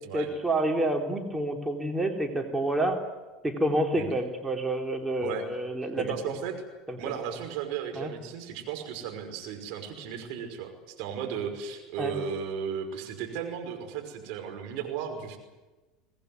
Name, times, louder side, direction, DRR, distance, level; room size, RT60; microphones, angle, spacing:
voice 1, 0.1-3.0 3.4-6.1 6.9-7.0 7.9-8.1 12.0-12.1, right 1 dB, 10° right, 3 dB, 3.3 m, -28 dB
voice 2, 6.0-6.6 7.0-15.4, right 8 dB, 60° right, 4 dB, 5.5 m, -35 dB
24.0 x 19.0 x 9.5 m, 1.2 s
hypercardioid pair, 75°, 0 cm